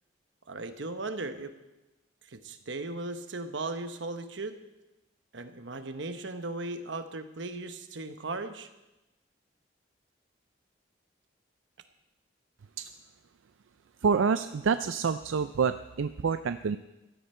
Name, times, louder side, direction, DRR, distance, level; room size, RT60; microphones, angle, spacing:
voice 1, 0.5-1.5 2.3-4.6 5.3-8.7, right 2 dB, 70° right, 9 dB, 1.1 m, -37 dB
voice 2, 14.0-16.8, right 5 dB, 90° right, 11 dB, 0.4 m, -27 dB
15.5 x 12.5 x 4.4 m, 0.98 s
head